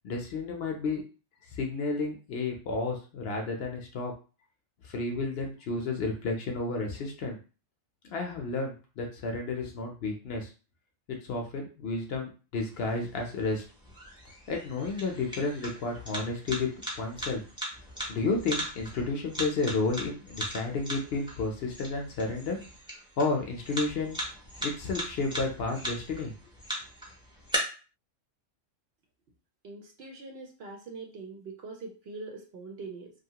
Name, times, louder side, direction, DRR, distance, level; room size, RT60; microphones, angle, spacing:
voice 1, 0.0-1.0 1.5-4.1 4.8-7.4 8.1-10.5 11.1-13.6 14.5-16.7 17.0-17.4 18.1-22.6 23.2-24.2 24.6-26.3, left 3 dB, 60° left, 2 dB, 0.8 m, -31 dB
sound 1, 12.6-27.6, equal, 5° right, 0.6 m, -40 dB
voice 2, 29.6-33.1, right 3 dB, 65° right, 2 dB, 0.7 m, -43 dB
2.7 x 2.3 x 2.8 m, 0.35 s
omnidirectional pair, 1.3 m